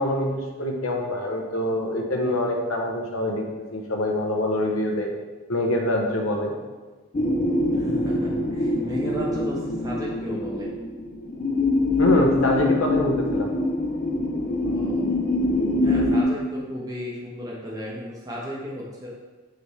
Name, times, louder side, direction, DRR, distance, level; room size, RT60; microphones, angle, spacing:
voice 1, 0.0-3.4 3.7-5.1 5.5-6.5 12.0-13.5, left 1 dB, 85° left, 1 dB, 0.9 m, -24 dB
sound 1, 7.1-16.2, left 2 dB, 35° left, 0.5 m, -24 dB
voice 2, 7.7-10.7 14.6-15.1 15.8-19.1, equal, 20° right, -5 dB, 1.0 m, -34 dB
8.7 x 3.4 x 3.2 m, 1.3 s
head